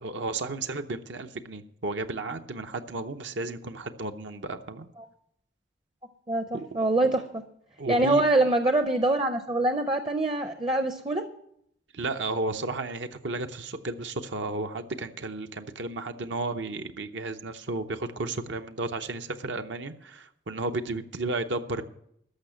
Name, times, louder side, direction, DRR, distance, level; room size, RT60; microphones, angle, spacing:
voice 1, 0.0-4.9 6.5-6.9 7.8-8.2 11.9-21.8, right 3 dB, 75° right, 7 dB, 0.8 m, -33 dB
voice 2, 6.3-7.4 7.9-11.3, right 2 dB, 25° right, 8 dB, 0.6 m, -24 dB
13.5 x 5.8 x 9.0 m, 0.72 s
head